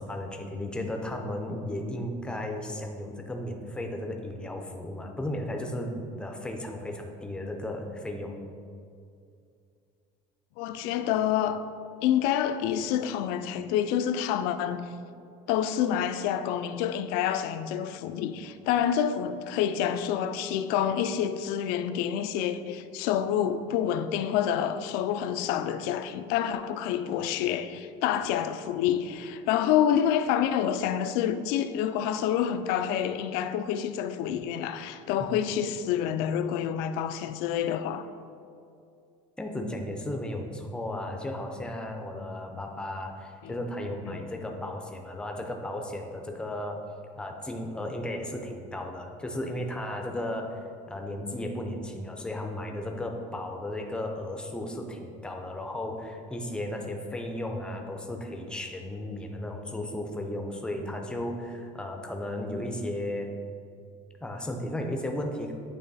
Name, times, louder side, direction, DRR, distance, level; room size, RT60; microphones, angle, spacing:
voice 1, 0.0-8.4 39.4-46.8 47.2-63.3 64.2-65.5, left 1 dB, 5° left, 0.5 m, -35 dB
voice 2, 10.6-11.6 12.0-14.9 15.5-38.1 43.4-43.6 44.1-44.2, left 9 dB, 75° left, 0.4 m, -28 dB
8.9 x 3.1 x 4.0 m
cardioid pair, 155°, 16 cm